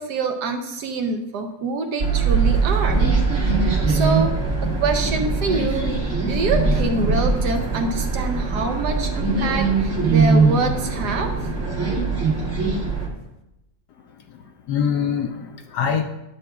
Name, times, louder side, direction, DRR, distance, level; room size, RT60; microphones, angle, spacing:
voice 1, 0.0-3.1 3.5-4.4 4.6-5.9 6.2-11.3, right 3 dB, 70° right, 4 dB, 1.1 m, -26 dB
sound 1, 2.0-13.1, right 4 dB, 40° right, 1.4 m, -21 dB
voice 2, 14.0-16.0, left 7 dB, 75° left, 5 dB, 1.0 m, -25 dB
11.0 x 6.9 x 2.3 m, 0.91 s
omnidirectional pair, 2.1 m